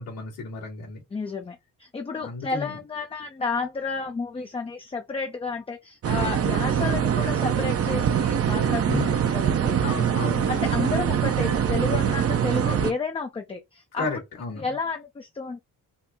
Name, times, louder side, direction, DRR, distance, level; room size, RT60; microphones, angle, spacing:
voice 1, 0.0-1.0 2.2-2.8 8.8-9.2 9.8-10.6 14.0-14.7, left 3 dB, 75° left, 2.0 m, -33 dB
voice 2, 1.1-14.1 14.6-15.6, left 4 dB, 15° left, 0.5 m, -32 dB
sound 1, 6.0-12.9, right 8 dB, 45° right, 0.6 m, -23 dB
4.0 x 2.0 x 3.6 m
cardioid pair, 120°, 34 cm